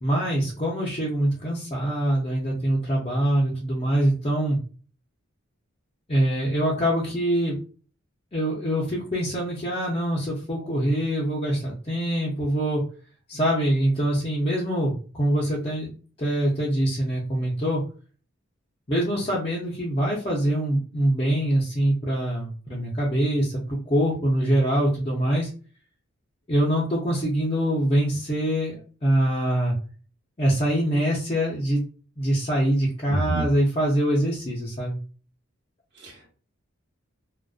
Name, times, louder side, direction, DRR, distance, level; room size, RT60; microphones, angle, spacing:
voice 1, 0.0-4.6 6.1-7.6 8.3-12.8 13.3-15.9 16.2-17.8 18.9-25.5 26.5-29.7 30.4-31.8 32.2-35.0, right 1 dB, 25° left, -5 dB, 0.5 m, -24 dB
voice 2, 33.1-33.4 35.9-36.3, right 1 dB, 55° right, -1 dB, 0.9 m, -28 dB
2.4 x 2.2 x 2.3 m, 0.39 s
head